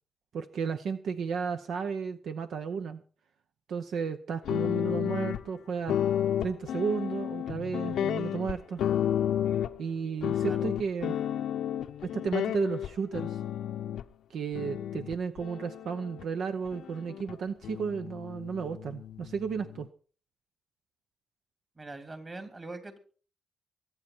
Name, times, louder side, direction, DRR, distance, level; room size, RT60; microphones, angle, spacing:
voice 1, 0.3-3.0 3.7-6.0 6.4-8.8 9.8-11.2 12.0-13.4 14.3-19.9, right 6 dB, 75° right, 9 dB, 0.8 m, -33 dB
sound 1, 4.5-5.4 5.9-9.9 10.2-14.0 14.5-16.2 16.7-17.3 17.6-19.9, left 10 dB, 85° left, 0.7 m, -32 dB
voice 2, 21.8-23.0, right 2 dB, 35° right, 8 dB, 3.4 m, -42 dB
23.5 x 9.0 x 4.4 m, 0.40 s
cardioid pair, 75°, 0 cm